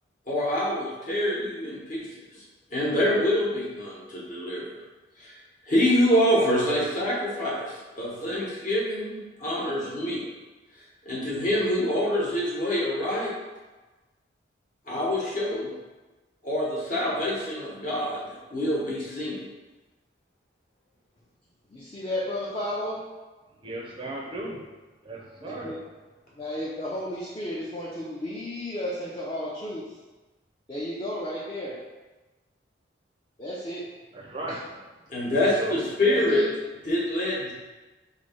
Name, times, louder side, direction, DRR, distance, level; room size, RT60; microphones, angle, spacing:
voice 1, 0.3-2.1 2.3-2.4 2.7-4.7 5.2-5.3 5.6-10.2 11.0-13.3 14.9-15.7 16.4-19.5 35.1-36.4 36.9-37.5, left 1 dB, 45° left, -6 dB, 1.1 m, -26 dB
voice 2, 21.7-23.0 25.4-25.8 26.4-30.0 30.7-31.8 33.4-33.9 34.5-34.6 36.0-36.5, left 1 dB, 25° left, -6 dB, 0.5 m, -33 dB
voice 3, 23.6-24.6 25.1-25.7 34.3-34.6 35.6-35.8, right 1 dB, 25° right, -3 dB, 0.5 m, -35 dB
3.0 x 2.7 x 4.3 m, 1.2 s
head